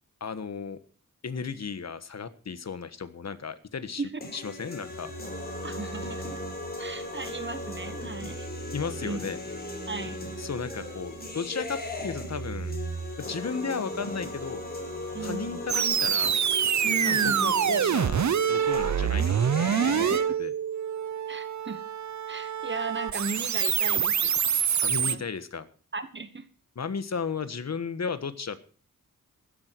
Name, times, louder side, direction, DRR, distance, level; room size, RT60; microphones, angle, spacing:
voice 1, 0.2-0.8 1.2-5.1 8.7-9.4 10.4-12.7 13.2-14.7 15.2-16.3 17.1-20.5 24.8-25.7 26.7-28.6, left 5 dB, 50° left, 12 dB, 1.5 m, -35 dB
sound 1, 4.2-20.2, left 2 dB, 30° left, 5.0 m, -38 dB
sound 2, 4.9-16.4, right 5 dB, 80° right, 2.1 m, -43 dB
voice 2, 5.6-6.4 6.8-8.5 9.0-9.2 9.9-10.2 15.1-15.6 16.8-17.5 19.8-20.2 21.3-21.8 22.3-24.3 25.0-25.2 25.9-26.4, right 4 dB, 35° right, 11 dB, 1.3 m, -36 dB
sound 3, 15.7-25.2, right 8 dB, 60° right, 0.8 m, -26 dB
15.5 x 12.5 x 4.7 m, 0.41 s
wide cardioid pair, 130°, 33 cm